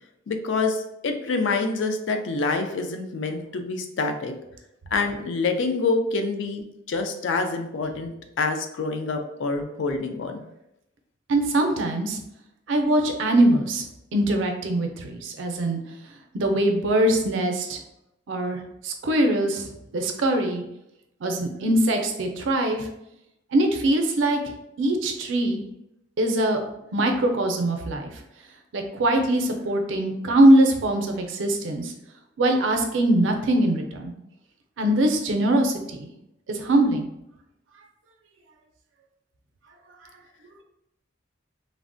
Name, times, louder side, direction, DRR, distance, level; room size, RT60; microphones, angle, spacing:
voice 1, 0.3-4.3 4.9-10.4, left 3 dB, 70° left, 5 dB, 0.4 m, -26 dB
voice 2, 11.3-12.2 12.7-13.8 14.1-15.8 16.3-17.8 18.3-20.6 21.2-22.9 23.5-24.4 24.8-25.6 26.2-26.6 26.9-28.1 28.7-31.9 32.4-34.1 34.8-36.1 36.5-37.1, right 1 dB, 80° right, 4 dB, 0.5 m, -22 dB
3.3 x 2.1 x 2.5 m, 0.83 s
head